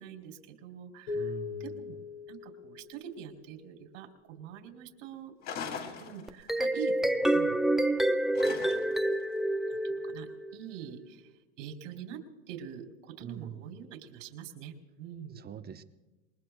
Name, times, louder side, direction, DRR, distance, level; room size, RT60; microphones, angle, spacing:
voice 1, 0.0-1.3 1.6-2.0 2.3-5.3 6.0-7.6 8.3-9.0 9.7-11.2 11.6-15.4, right 9 dB, 75° right, 4 dB, 3.8 m, -45 dB
sound 1, 1.1-3.6, left 5 dB, 75° left, 2.6 m, -40 dB
voice 2, 1.1-1.9 13.2-13.7 15.3-15.8, right 8 dB, 25° right, 9 dB, 0.9 m, -44 dB
sound 2, 5.4-6.6 8.3-9.1, left 6 dB, 45° left, 3.1 m, -40 dB
sound 3, 6.3-10.6, right 1 dB, ahead, 0.5 m, -28 dB
28.0 x 21.0 x 2.3 m, 1.2 s
supercardioid pair, 125°, 38 cm